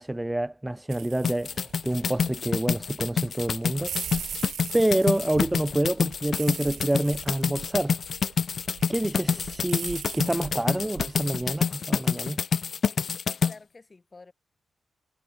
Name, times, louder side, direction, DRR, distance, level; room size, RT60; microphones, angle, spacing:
voice 1, 0.0-4.3 4.7-8.0 8.9-12.4, right 1 dB, 10° right, 0.7 m, -27 dB
sound 1, 0.9-11.6, right 9 dB, 80° right, 1.8 m, -41 dB
sound 2, 1.2-13.5, left 6 dB, 55° left, 0.6 m, -27 dB
voice 2, 13.3-14.3, left 3 dB, 25° left, 7.6 m, -50 dB
cardioid pair, 110°, 0 cm